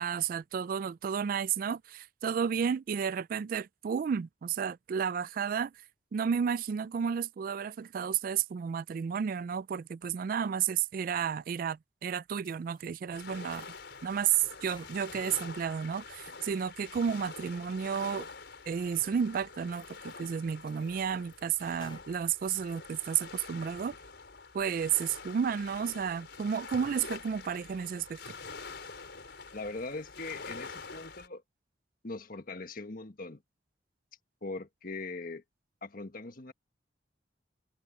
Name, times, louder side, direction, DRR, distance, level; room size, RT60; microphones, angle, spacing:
voice 1, 0.0-5.7 6.1-13.7 14.0-18.3 18.7-23.9 24.5-28.3, right 7 dB, 50° right, 0.3 m, -32 dB
sound 1, 12.4-13.0 13.4-15.3 15.7-16.3 16.8-17.2 17.6-17.7 18.3-18.4 19.0-19.1 19.6-20.3 20.7-22.1 22.5-23.2 23.6-24.0, left 3 dB, 30° left, 3.5 m, -58 dB
sound 2, 13.1-31.3, left 4 dB, 70° left, 4.6 m, -46 dB
voice 2, 29.5-31.4 32.0-33.4 34.4-35.4 35.8-36.5, left 3 dB, 50° left, 1.5 m, -40 dB
head